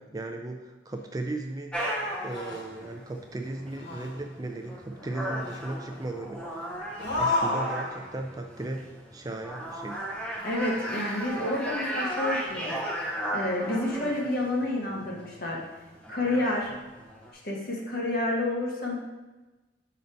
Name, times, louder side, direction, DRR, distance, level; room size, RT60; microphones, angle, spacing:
voice 1, 0.0-6.7 7.0-10.0, right 2 dB, 20° right, 4 dB, 0.4 m, -37 dB
sound 1, 1.7-17.3, equal, 5° left, 0.8 m, -36 dB
sound 2, 1.8-1.9 2.2-3.0 3.7-4.2 5.4-5.6 7.0-8.2, left 2 dB, 70° left, 1.2 m, -31 dB
voice 2, 10.4-12.8 13.3-15.6 16.1-16.7 17.4-18.9, left 1 dB, 50° left, -3 dB, 1.4 m, -29 dB
6.4 x 4.1 x 4.4 m, 1.1 s
head